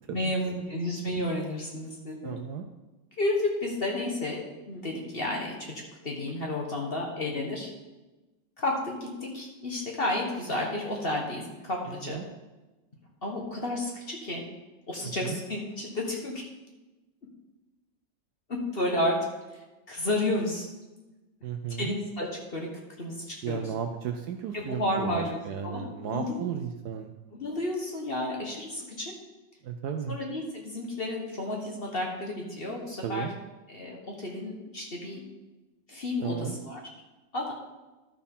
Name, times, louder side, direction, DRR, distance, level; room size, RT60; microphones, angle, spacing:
voice 1, 0.1-2.3 3.2-4.4 4.7-7.7 8.6-12.2 13.2-14.4 14.9-16.4 18.5-19.2 19.5-19.6 19.9-20.7 21.7-22.7 23.0-23.7 24.5-25.4 25.6-26.5 27.3-29.1 30.1-33.3 33.7-35.2 35.9-36.8 37.3-37.5, left 1 dB, 35° left, -1 dB, 1.2 m, -31 dB
voice 2, 2.2-2.7 11.9-12.3 15.0-15.4 21.4-21.9 23.4-27.1 29.6-30.2 33.0-33.3 36.2-36.6, right 8 dB, 70° right, 6 dB, 1.0 m, -34 dB
12.0 x 4.5 x 5.4 m, 1.1 s
omnidirectional pair, 2.1 m